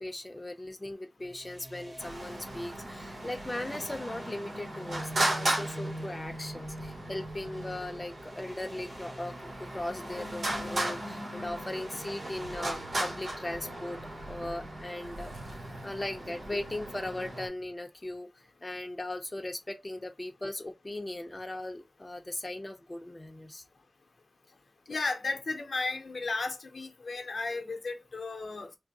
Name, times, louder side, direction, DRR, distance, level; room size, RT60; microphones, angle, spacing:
voice 1, 0.0-14.0 14.3-15.5 15.8-18.3 18.6-23.6, left 1 dB, 25° left, 0.6 m, -38 dB
sound 1, 1.2-14.9, equal, 30° right, 1.5 m, -45 dB
Traffic noise roadway noise, 2.0-17.5, right 1 dB, 75° right, 1.0 m, -37 dB
voice 2, 24.9-28.7, left 3 dB, 75° left, 0.7 m, -34 dB
3.5 x 2.0 x 3.9 m
wide cardioid pair, 100°, 0 cm